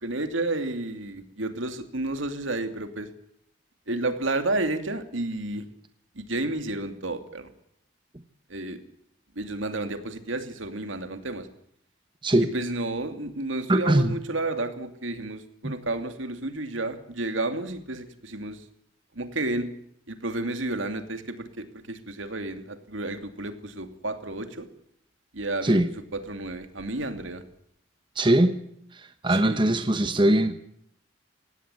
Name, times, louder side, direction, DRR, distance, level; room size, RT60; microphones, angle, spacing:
voice 1, 0.0-3.1 3.9-5.6 6.1-7.5 8.5-8.8 9.3-11.5 12.4-18.7 19.1-19.7 20.1-24.7 25.3-25.8 26.1-27.4 29.3-29.8, right 2 dB, 80° right, 2.7 m, -31 dB
voice 2, 13.7-14.1 15.6-15.7 25.6-25.9 28.2-28.6 29.2-30.6, right 1 dB, 25° right, 1.2 m, -21 dB
18.5 x 16.5 x 9.7 m
head